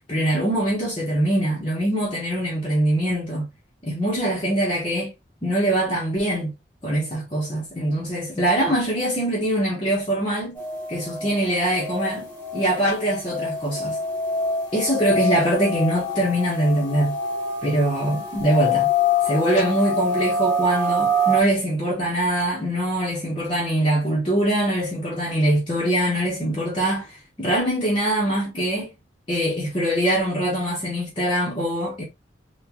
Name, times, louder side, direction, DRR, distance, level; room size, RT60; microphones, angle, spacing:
voice 1, 0.1-3.5 3.8-5.1 5.4-6.5 6.8-10.6 10.9-14.0 14.7-17.1 17.6-18.9 19.2-28.9 29.3-32.0, right 1 dB, 30° left, 1.0 m, -23 dB
sound 1, 10.6-21.4, left 2 dB, 10° left, 1.5 m, -26 dB
3.8 x 2.4 x 2.9 m
head